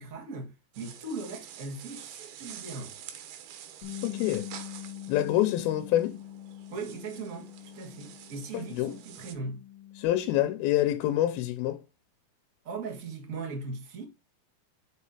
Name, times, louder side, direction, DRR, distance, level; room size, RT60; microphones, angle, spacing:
voice 1, 0.0-3.0 6.7-9.6 12.6-14.0, right 3 dB, 40° right, 1.1 m, -39 dB
sound 1, 0.7-9.3, right 9 dB, 85° right, 3.0 m, -47 dB
Bass guitar, 3.8-8.5 8.8-10.1, left 12 dB, 40° left, 2.0 m, -43 dB
voice 2, 4.0-4.5 5.1-6.2 8.5-9.0 10.0-11.8, left 13 dB, 85° left, 2.7 m, -26 dB
5.5 x 5.4 x 4.9 m
omnidirectional pair, 4.3 m